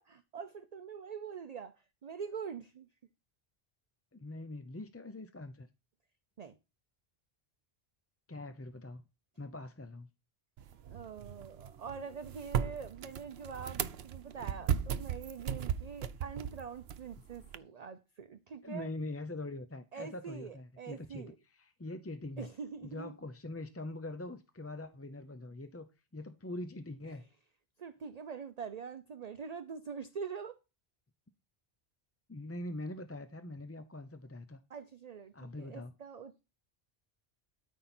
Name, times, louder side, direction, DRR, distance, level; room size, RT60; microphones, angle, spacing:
voice 1, 0.0-1.7 2.0-2.9 6.4-6.6 10.8-18.9 19.9-21.3 22.4-23.1 27.1-27.2 27.8-30.6 34.7-36.4, right 6 dB, 45° right, 0.7 m, -44 dB
voice 2, 4.1-5.7 8.3-9.0 9.4-10.1 18.6-22.5 22.8-25.9 26.1-27.2 32.3-34.6 35.3-35.9, left 2 dB, 20° left, 0.5 m, -43 dB
sound 1, 10.6-17.6, right 8 dB, 75° right, 0.9 m, -37 dB
13.0 x 5.5 x 4.3 m
omnidirectional pair, 1.0 m